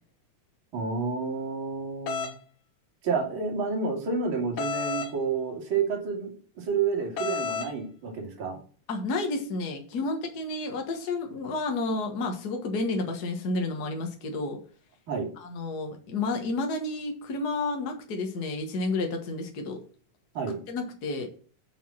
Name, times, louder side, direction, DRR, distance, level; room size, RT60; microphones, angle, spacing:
voice 1, 0.7-2.3 3.0-8.6 15.1-15.3 20.3-20.6, right 5 dB, 40° right, -1 dB, 3.0 m, -30 dB
sound 1, 2.1-2.3 4.6-5.1 7.2-7.7, left 5 dB, 80° left, 1.1 m, -31 dB
voice 2, 8.9-14.6 15.4-19.8 20.7-21.4, left 3 dB, 55° left, 3 dB, 1.1 m, -31 dB
7.2 x 5.8 x 7.4 m, 0.42 s
omnidirectional pair, 3.8 m